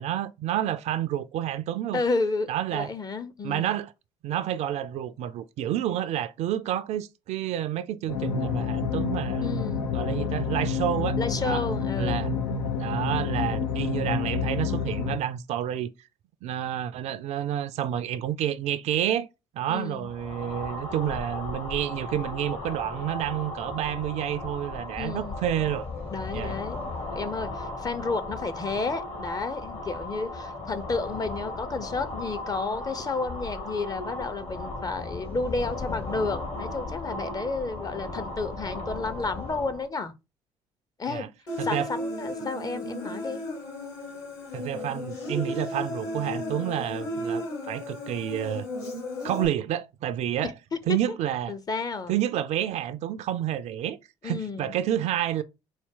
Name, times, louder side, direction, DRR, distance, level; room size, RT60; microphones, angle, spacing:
voice 1, 0.0-2.0 2.5-2.9 3.4-3.9 4.2-9.5 9.9-11.6 12.0-12.3 12.8-15.9 16.4-19.3 19.5-25.9 26.3-26.6 41.1-41.3 41.6-41.9 44.5-48.7 49.2-50.5 50.9-51.5 52.1-54.0 54.2-55.4, right 11 dB, 55° right, 0.4 m, -29 dB
voice 2, 1.9-3.8 9.4-9.9 11.2-12.3 19.7-20.1 25.0-25.3 26.1-40.1 41.0-41.3 41.6-43.4 50.4-51.2 51.5-52.2 54.2-54.7, left 3 dB, 30° left, 0.7 m, -31 dB
sound 1, 8.1-15.2, left 5 dB, 85° left, 0.6 m, -28 dB
sound 2, 20.0-39.9, left 2 dB, 45° left, 1.3 m, -36 dB
Human voice, 41.5-49.5, left 1 dB, 65° left, 2.1 m, -34 dB
4.3 x 2.2 x 3.7 m
hypercardioid pair, 55°, 14 cm